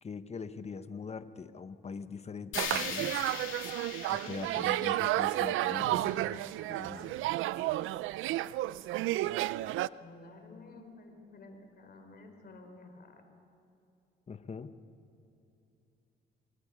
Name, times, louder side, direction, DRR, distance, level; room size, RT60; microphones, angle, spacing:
voice 1, 0.0-3.2 4.1-7.3 14.3-14.8, left 5 dB, 35° left, 11 dB, 1.1 m, -43 dB
sound 1, 2.5-6.6, left 7 dB, 80° left, 3.1 m, -41 dB
sound 2, 2.5-9.9, right 16 dB, 85° right, 0.4 m, -32 dB
voice 2, 10.0-13.2, left 3 dB, 55° left, 5 dB, 4.1 m, -52 dB
27.0 x 23.0 x 5.1 m, 2.7 s
cardioid pair, 90°, 20 cm